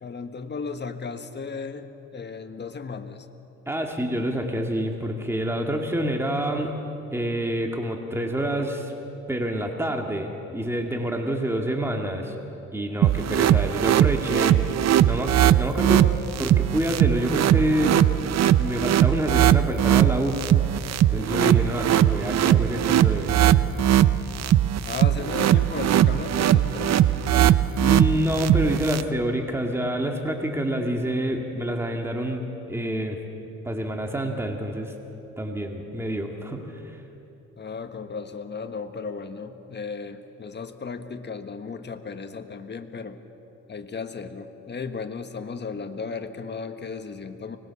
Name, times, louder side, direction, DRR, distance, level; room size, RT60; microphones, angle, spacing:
voice 1, 0.0-3.4 14.5-15.3 24.9-27.0 37.6-43.2 43.7-47.6, left 5 dB, 35° left, 7 dB, 1.5 m, -35 dB
voice 2, 3.7-6.7 7.1-8.9 9.3-12.4 12.7-14.6 15.0-16.1 16.4-18.0 18.6-20.4 21.1-23.5 27.8-33.2 33.6-34.9 35.4-37.0, equal, 10° right, 2 dB, 2.1 m, -27 dB
sound 1, 13.0-29.0, right 11 dB, 60° right, 0.7 m, -20 dB
25.0 x 20.0 x 7.1 m, 2.9 s
cardioid pair, 90°, 30 cm